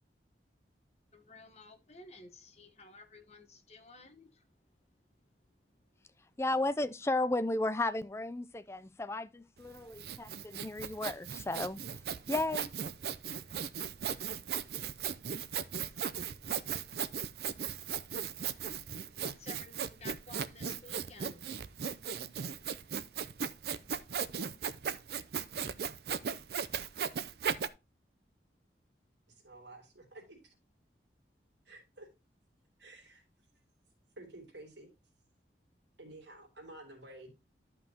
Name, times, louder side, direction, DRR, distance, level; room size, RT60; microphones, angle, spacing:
voice 1, 1.1-4.4 19.1-21.5, left 3 dB, 35° left, 1.2 m, -53 dB
voice 2, 6.4-11.8 12.3-12.7, left 2 dB, 15° left, 0.4 m, -34 dB
Sawing, 9.6-27.7, right 7 dB, 65° right, 0.5 m, -37 dB
voice 3, 29.3-30.5 31.6-32.1 32.8-33.2 34.2-34.9 36.0-37.4, right 2 dB, 90° right, 3.2 m, -51 dB
12.0 x 5.6 x 2.9 m
head